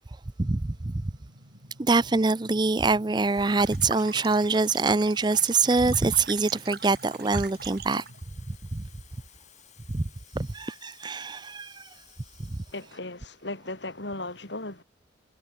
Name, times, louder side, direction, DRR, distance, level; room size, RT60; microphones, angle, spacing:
voice 1, 0.4-0.9 1.8-8.0 8.5-8.8 9.9-10.1 10.3-11.9, right 3 dB, 25° right, 0.5 m, -24 dB
sound 1, 0.7-8.2, equal, 90° right, 7.3 m, -52 dB
Water tap faucet / Fill (with liquid), 3.1-13.0 13.4-13.6, left 10 dB, 40° left, 7.4 m, -56 dB
sound 2, 3.4-8.2, right 6 dB, 55° right, 1.8 m, -41 dB
voice 2, 12.7-14.8, left 2 dB, 70° left, 4.7 m, -36 dB
head